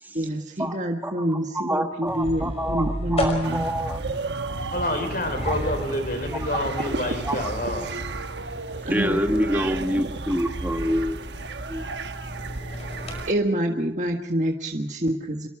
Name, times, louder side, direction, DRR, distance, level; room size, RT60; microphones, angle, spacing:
voice 1, 0.1-3.6 8.9-9.2 13.3-15.5, right 1 dB, 45° right, 2 dB, 1.6 m, -26 dB
voice 2, 1.0-4.0 5.4-5.5 7.2-7.4 8.9-11.2 11.7-11.9, equal, 10° right, 5 dB, 1.4 m, -27 dB
sound 1, 2.1-13.2, equal, 35° left, 5.5 m, -36 dB
sound 2, 3.4-13.3, right 3 dB, 85° right, 1.1 m, -33 dB
voice 3, 4.7-8.0, left 1 dB, 55° left, 7 dB, 4.5 m, -28 dB
26.5 x 23.0 x 4.9 m, 0.80 s
head